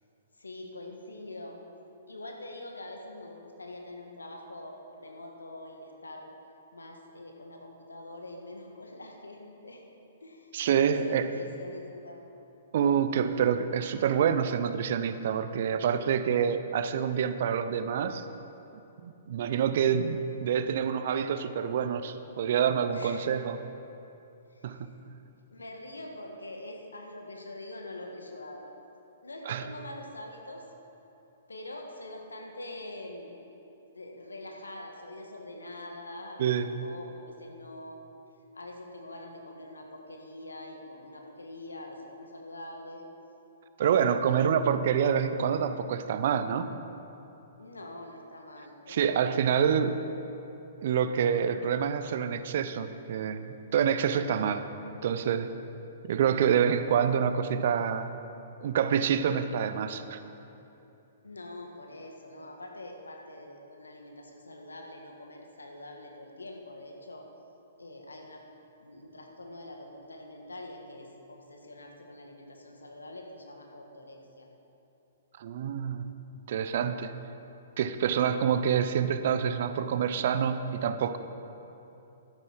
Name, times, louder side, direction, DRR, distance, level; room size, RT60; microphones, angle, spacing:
voice 1, 0.3-1.6 2.1-6.3 6.7-9.8 10.2-10.5 10.8-12.2 22.9-23.3 24.5-24.8 25.5-28.7 29.2-30.6 31.5-33.4 33.9-38.0 38.5-43.1 43.9-44.4 47.6-49.7 61.2-67.3 67.8-68.4 68.8-74.5, left 1 dB, 85° left, 1 dB, 1.5 m, -44 dB
voice 2, 10.5-11.3 12.7-18.2 19.0-23.6 24.6-24.9 29.5-29.7 36.4-36.7 43.8-46.7 48.9-50.0 50.8-54.6 55.0-55.5 56.1-58.2 58.6-60.2 75.4-76.1 76.5-77.2 77.8-81.2, right 8 dB, 55° right, 11 dB, 0.6 m, -27 dB
12.0 x 9.6 x 4.7 m, 3.0 s
hypercardioid pair, 120°, 0 cm